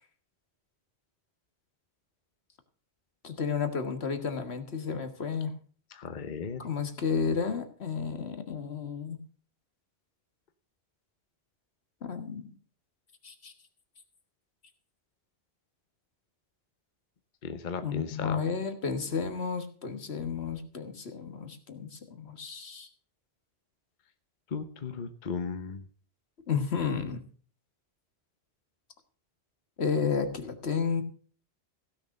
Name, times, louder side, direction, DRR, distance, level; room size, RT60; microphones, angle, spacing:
voice 1, 3.2-5.5 6.6-9.2 12.0-12.5 13.2-13.5 17.8-22.9 26.5-27.2 29.8-31.0, left 6 dB, 70° left, 8 dB, 1.8 m, -32 dB
voice 2, 5.9-6.6 17.4-18.4 24.5-25.9, left 5 dB, 45° left, 9 dB, 1.0 m, -36 dB
16.0 x 6.5 x 6.6 m, 0.43 s
omnidirectional pair, 1.1 m